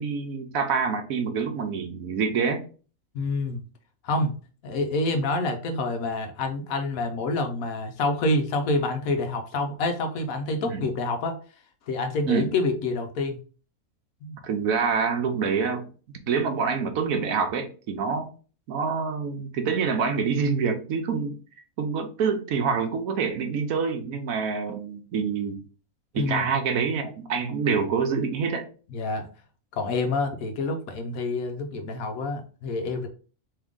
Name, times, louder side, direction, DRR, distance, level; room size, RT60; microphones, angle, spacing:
voice 1, 0.0-2.7 10.7-10.8 12.3-12.5 14.4-18.3 18.7-21.4 21.8-25.6 26.1-28.7, right 5 dB, 70° right, 6 dB, 1.1 m, -26 dB
voice 2, 3.1-3.6 4.0-4.3 4.6-11.4 11.9-13.4 14.2-14.4 26.2-26.5 28.9-29.3 29.7-33.1, left 2 dB, 70° left, 5 dB, 1.2 m, -27 dB
3.7 x 3.1 x 3.5 m, 0.38 s
omnidirectional pair, 1.5 m